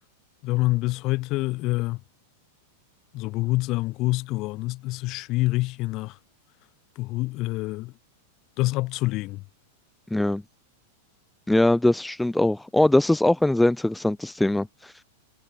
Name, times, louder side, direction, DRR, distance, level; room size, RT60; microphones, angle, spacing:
voice 1, 0.4-2.0 3.1-6.2 7.0-7.9 8.6-9.4, left 20 dB, 45° left, 2.0 m, -26 dB
voice 2, 10.1-10.4 11.5-14.9, left 1 dB, 5° left, 0.5 m, -21 dB
hypercardioid pair, 120°, 0 cm